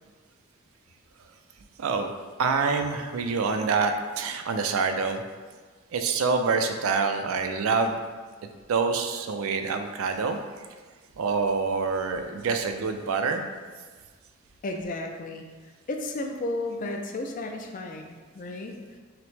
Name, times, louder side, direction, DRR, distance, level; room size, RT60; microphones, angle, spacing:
voice 1, 1.8-2.1 2.4-5.2 5.9-8.0 8.7-10.4 11.2-13.4, right 4 dB, 75° right, 6 dB, 0.4 m, -26 dB
voice 2, 14.6-15.5 15.9-18.8, left 2 dB, 40° left, 3 dB, 0.4 m, -33 dB
5.7 x 2.1 x 3.2 m, 1.4 s
head